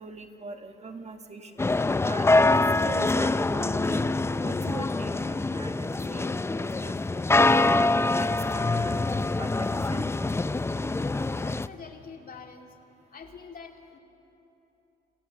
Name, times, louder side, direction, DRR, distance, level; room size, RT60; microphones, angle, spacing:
voice 1, 0.0-1.7 2.0-8.0 8.5-9.0 9.4-10.0, right 3 dB, 35° right, 6 dB, 1.6 m, -41 dB
sound 1, 1.6-11.7, left 2 dB, 15° left, 0.5 m, -25 dB
voice 2, 11.2-12.8 13.1-14.0, left 5 dB, 45° left, 3 dB, 2.5 m, -45 dB
27.5 x 22.0 x 6.4 m, 3.0 s
cardioid pair, 90°, 20 cm